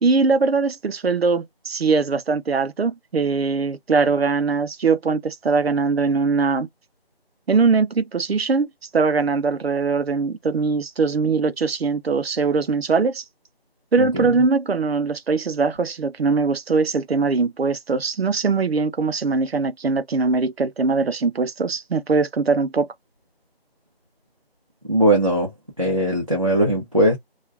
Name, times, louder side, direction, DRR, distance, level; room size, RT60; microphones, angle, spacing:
voice 1, 0.0-6.7 7.5-13.2 13.9-22.9, right 4 dB, 75° right, 0.6 m, -21 dB
voice 2, 14.0-14.3 24.9-25.5 25.8-27.2, right 1 dB, 35° right, 0.8 m, -19 dB
3.0 x 2.3 x 2.3 m
figure-of-eight pair, 175°, 31 cm